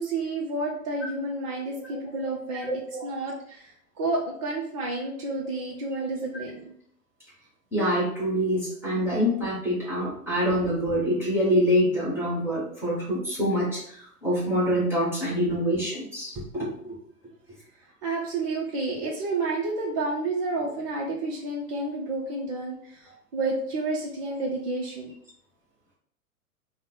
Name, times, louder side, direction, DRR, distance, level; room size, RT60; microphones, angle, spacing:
voice 1, 0.0-6.7 18.0-25.1, right 2 dB, 25° right, -4 dB, 0.4 m, -30 dB
voice 2, 7.7-16.9, equal, 5° right, -7 dB, 1.2 m, -25 dB
3.6 x 2.1 x 4.3 m, 0.65 s
figure-of-eight pair, 105°, 45 cm